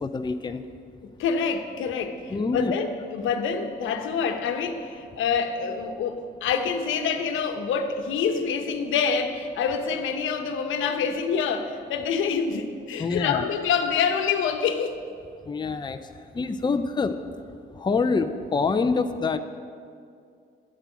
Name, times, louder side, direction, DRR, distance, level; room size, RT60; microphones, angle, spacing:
voice 1, 0.0-0.6 2.3-2.7 13.0-13.5 15.5-16.0 16.3-17.2 17.7-19.4, left 4 dB, 20° left, 8 dB, 0.6 m, -25 dB
voice 2, 1.2-15.0, left 6 dB, 85° left, 6 dB, 1.1 m, -26 dB
11.0 x 7.6 x 8.3 m, 2.3 s
cardioid pair, 90°, 20 cm